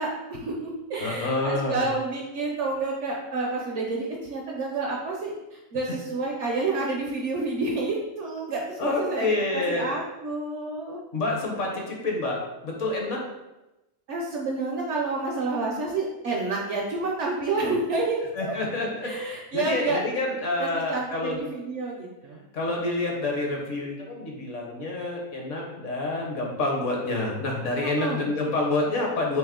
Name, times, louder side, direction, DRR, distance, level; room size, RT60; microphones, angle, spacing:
voice 1, 0.0-11.0 14.1-18.5 19.0-20.0 20.6-22.4 27.8-28.3, right 3 dB, 65° right, -2 dB, 0.7 m, -29 dB
voice 2, 1.0-1.9 8.8-9.9 11.1-12.4 12.6-13.2 18.3-19.3 19.5-21.4 22.5-29.4, left 2 dB, 60° left, -1 dB, 1.0 m, -28 dB
3.4 x 2.9 x 3.6 m, 1.0 s
omnidirectional pair, 1.6 m